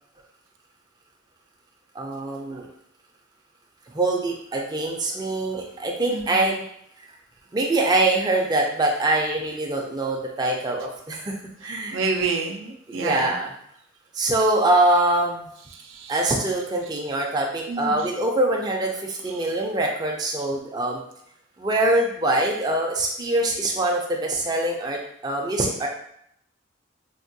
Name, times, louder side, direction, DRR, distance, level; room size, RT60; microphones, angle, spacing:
voice 1, 1.9-2.7 3.9-6.6 7.5-11.3 11.6-12.0 12.9-13.5 14.1-15.5 16.1-21.0 21.6-25.9, right 2 dB, 20° right, 0 dB, 0.3 m, -24 dB
voice 2, 6.1-6.4 11.6-13.3 15.7-16.1 17.7-18.1 19.3-19.4, right 4 dB, 85° right, 3 dB, 0.4 m, -29 dB
3.4 x 2.2 x 2.6 m, 0.70 s
head